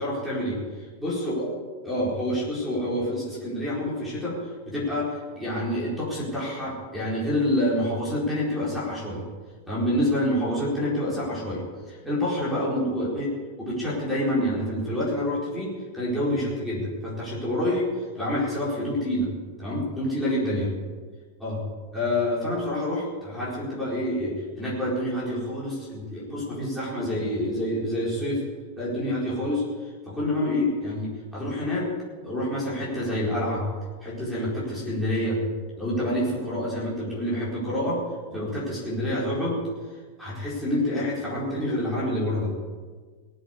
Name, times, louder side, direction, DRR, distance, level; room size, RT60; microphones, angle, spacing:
voice 1, 0.0-1.5 1.8-9.2 9.7-13.3 13.6-17.9 18.1-19.3 19.6-20.7 21.4-21.6 21.9-28.4 28.8-31.9 32.2-33.6 34.0-35.4 35.8-38.0 38.3-39.6 40.2-42.5, left 1 dB, ahead, -7 dB, 4.5 m, -27 dB
18.5 x 7.9 x 8.2 m, 1.5 s
supercardioid pair, 165°, 0 cm